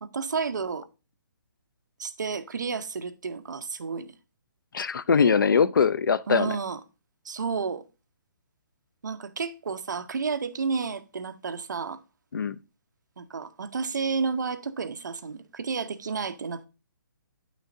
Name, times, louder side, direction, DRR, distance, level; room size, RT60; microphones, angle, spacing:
voice 1, 0.0-0.8 2.0-4.1 6.3-6.8 7.2-7.8 9.0-12.0 13.2-16.6, right 5 dB, 60° right, 0.7 m, -31 dB
voice 2, 4.7-6.6 12.3-12.6, left 6 dB, 75° left, 0.5 m, -22 dB
9.2 x 6.2 x 2.6 m
hypercardioid pair, 180°, 11 cm